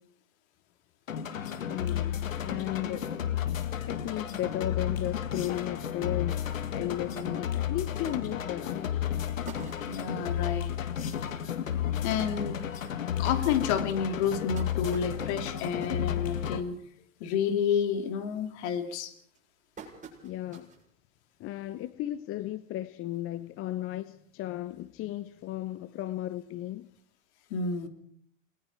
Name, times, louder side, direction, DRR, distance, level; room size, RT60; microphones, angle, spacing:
sound 1, 1.1-16.6, left 9 dB, 80° left, 1.9 m, -32 dB
voice 1, 1.3-3.1 3.9-6.4 6.7-8.9 20.2-20.7 21.4-26.9, left 13 dB, 35° left, 0.9 m, -35 dB
sound 2, 9.5-10.3 10.8-10.9 11.2-11.3 11.6-11.8 12.5-12.6 13.2-13.3 14.0-16.8 17.2-17.5 17.9-18.3 18.9-20.9 21.4-21.5 22.6-22.7, right 6 dB, 20° right, 7.2 m, -49 dB
voice 2, 9.8-10.8 11.5-11.6 12.0-12.7 13.2-16.8 17.2-19.1 27.5-27.9, left 7 dB, 55° left, 2.9 m, -30 dB
29.0 x 20.0 x 4.5 m
hypercardioid pair, 95°, 39 cm